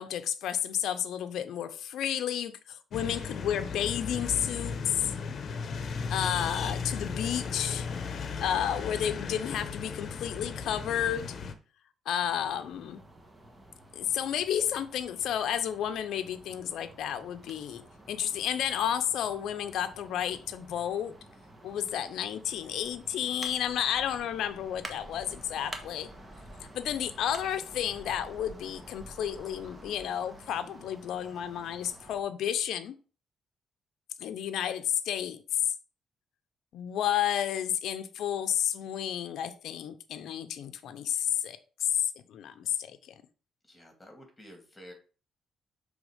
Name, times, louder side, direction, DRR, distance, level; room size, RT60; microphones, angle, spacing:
voice 1, 0.0-5.1 6.1-7.9 8.4-11.3 12.1-13.0 13.9-17.8 18.1-21.1 21.6-26.1 26.7-33.0 34.2-35.7 36.7-43.1, left 10 dB, 80° left, 0.6 m, -31 dB
sound 1, 2.9-11.5, left 5 dB, 55° left, 0.8 m, -36 dB
sound 2, 12.2-32.2, right 1 dB, 20° right, 1.3 m, -50 dB
voice 2, 43.6-44.9, equal, 15° left, 2.7 m, -51 dB
6.2 x 3.4 x 5.0 m
cardioid pair, 90°, 0 cm